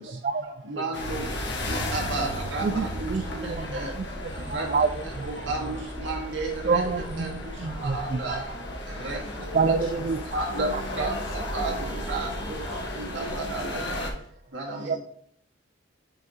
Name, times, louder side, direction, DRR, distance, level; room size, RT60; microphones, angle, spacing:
voice 1, 0.2-0.9 1.3-1.4 1.7-1.8 2.6-5.7 6.6-8.5 9.5-10.2 10.7-10.8 14.8-15.0, right 4 dB, 40° right, 0.3 m, -28 dB
sound 1, 0.9-14.1, left 1 dB, 60° left, 1.2 m, -34 dB
voice 2, 1.7-2.7 3.0-3.5 4.5-4.7 5.5-5.8 6.0-6.8 7.2-7.3 7.8-8.4 9.0-9.2 10.3-10.7 11.0-11.1 11.5-11.7 12.1-12.3 13.1-14.0 14.5-14.8, right 3 dB, 65° right, 2.1 m, -31 dB
voice 3, 9.0-10.0 10.4-14.1 14.8-15.0, left 1 dB, 80° left, 3.1 m, -41 dB
7.6 x 5.8 x 3.1 m
head